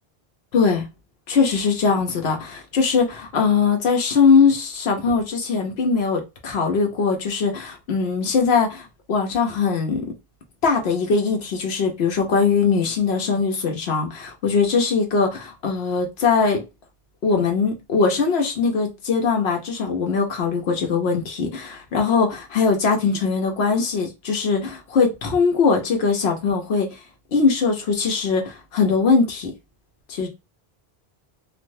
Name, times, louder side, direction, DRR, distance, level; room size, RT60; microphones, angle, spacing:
voice 1, 0.5-0.9 1.3-10.1 10.6-16.6 17.2-27.0 27.3-29.5 30.1-30.3, left 5 dB, 85° left, 1.1 m, -21 dB
3.2 x 2.5 x 2.6 m
omnidirectional pair, 1.0 m